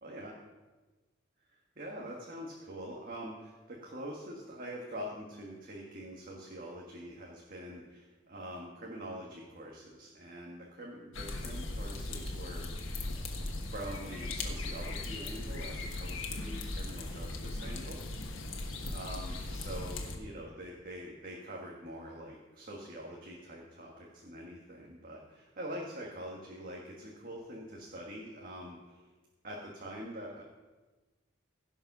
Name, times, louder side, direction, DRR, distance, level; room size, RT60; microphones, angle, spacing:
voice 1, 0.0-0.3 1.8-12.9 13.6-18.6 18.9-29.1 29.4-30.4, equal, 45° right, -2 dB, 1.5 m, -45 dB
sound 1, 11.1-20.2, left 2 dB, 70° left, 1.4 m, -38 dB
16.0 x 5.4 x 6.0 m, 1.2 s
head